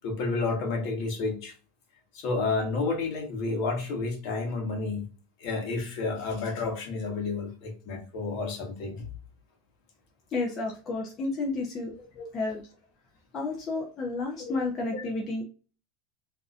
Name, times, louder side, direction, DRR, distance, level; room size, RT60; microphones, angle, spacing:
voice 1, 0.0-1.5 2.1-5.1 5.4-9.1 12.2-12.3 14.4-14.6 14.9-15.1, left 3 dB, 55° left, 3 dB, 1.1 m, -30 dB
voice 2, 10.3-11.9 12.3-12.6 13.3-15.4, left 3 dB, 35° left, -1 dB, 0.7 m, -31 dB
3.8 x 2.7 x 2.4 m, 0.36 s
supercardioid pair, 135°, 0 cm